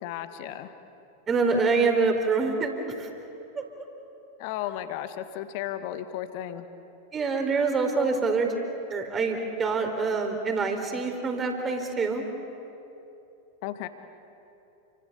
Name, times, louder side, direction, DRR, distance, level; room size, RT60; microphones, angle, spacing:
voice 1, 0.0-0.7 4.4-6.7 13.6-13.9, left 12 dB, 45° left, 9 dB, 1.8 m, -34 dB
voice 2, 1.3-3.1 3.6-3.7 7.1-8.5 8.9-12.3, right 4 dB, 20° right, 4 dB, 4.3 m, -26 dB
30.0 x 25.0 x 7.0 m, 2.9 s
figure-of-eight pair, 90°, 0 cm